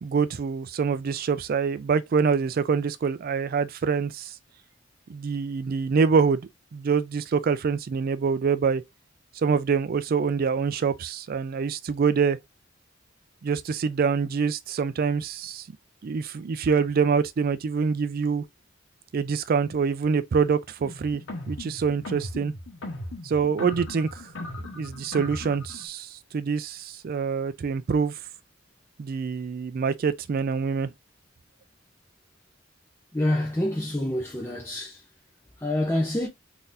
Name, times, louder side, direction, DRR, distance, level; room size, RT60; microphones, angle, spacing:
voice 1, 0.0-4.3 5.1-8.8 9.4-12.4 13.4-15.7 16.0-18.4 19.1-21.2 21.5-22.5 23.2-24.2 24.7-28.1 29.0-30.9, right 5 dB, 50° right, 0.3 m, -25 dB
sound 1, 20.8-25.9, left 1 dB, 75° left, 1.0 m, -38 dB
voice 2, 33.1-35.0 35.6-36.3, left 1 dB, 15° left, 0.6 m, -27 dB
3.8 x 2.8 x 2.5 m
head